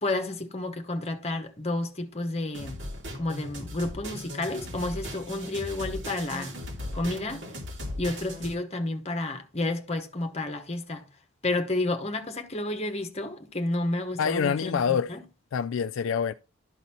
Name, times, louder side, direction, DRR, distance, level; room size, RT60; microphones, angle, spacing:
voice 1, 0.0-2.8 3.1-6.5 6.9-7.4 8.0-11.1 11.4-15.2, left 2 dB, 30° left, 1.1 m, -31 dB
sound 1, 2.5-8.5, equal, 60° right, 2.5 m, -38 dB
voice 2, 14.2-15.1 15.5-16.3, left 7 dB, 65° left, 0.3 m, -26 dB
12.0 x 4.0 x 4.3 m
head